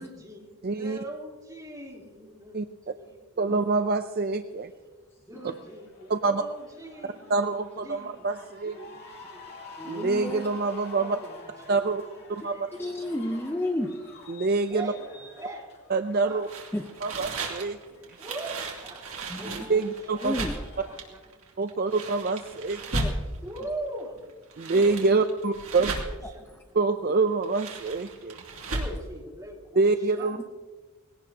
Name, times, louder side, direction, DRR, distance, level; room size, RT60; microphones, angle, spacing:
voice 1, 0.0-3.5 5.2-9.5 9.8-10.0 10.9-13.1 14.7-15.7 16.3-16.4 18.2-20.3 20.8-21.9 22.9-24.2 24.6-26.5 28.5-30.5, right 1 dB, 15° right, -4 dB, 3.4 m, -42 dB
voice 2, 0.6-1.0 2.5-2.7 3.4-4.7 6.1-6.4 7.3-8.7 9.9-11.2 11.7-12.0 12.4-12.7 14.3-14.9 15.9-16.5 17.0-18.0 19.7-20.3 21.6-22.8 24.6-25.9 26.8-28.4 29.8-30.4, right 3 dB, 45° right, 8 dB, 0.5 m, -26 dB
voice 3, 5.1-5.5 9.2-10.5 12.4-14.1 16.7-17.4 19.3-19.7 20.2-20.7 21.9-22.0 22.9-23.5 24.5-25.1 25.8-25.9 26.2-26.6 28.5-28.7 30.4-30.5, left 1 dB, 10° left, 3 dB, 0.7 m, -35 dB
sound 1, 5.5-21.0, left 3 dB, 45° left, 2.4 m, -49 dB
sound 2, 16.4-23.6 24.3-26.3 27.3-29.1, right 2 dB, 65° right, 2.5 m, -35 dB
20.0 x 17.5 x 2.9 m, 1.3 s
head